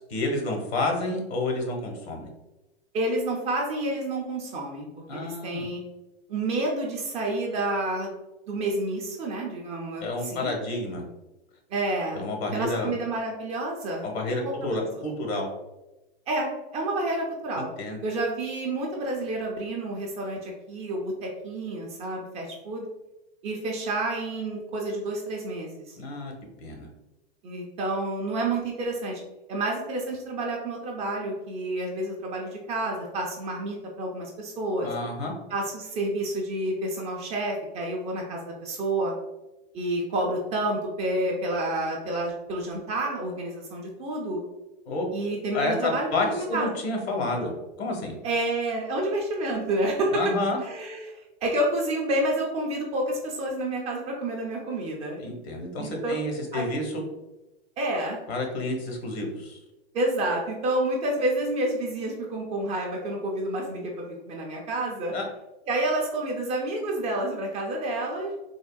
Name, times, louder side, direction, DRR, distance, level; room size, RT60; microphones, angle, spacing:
voice 1, 0.1-2.3 5.1-5.7 10.0-11.0 12.1-12.9 14.0-15.5 17.5-18.0 26.0-26.3 26.6-26.9 34.8-35.3 44.9-45.1 45.5-47.5 47.8-48.2 50.1-50.6 55.2-56.9 58.3-59.6 65.1-65.3, left 2 dB, 80° left, 2 dB, 0.9 m, -29 dB
voice 2, 2.9-5.8 6.3-8.2 8.5-10.5 11.7-14.1 14.4-15.0 16.3-17.7 18.0-22.9 23.4-26.0 27.4-29.2 29.5-34.9 35.5-39.1 39.7-44.4 45.1-46.7 48.2-50.2 50.6-55.2 55.8-56.2 56.5-56.6 57.8-58.2 59.9-65.1 65.7-68.3, right 1 dB, 20° right, 0 dB, 0.3 m, -29 dB
3.5 x 2.1 x 2.2 m, 1.0 s
hypercardioid pair, 130°, 31 cm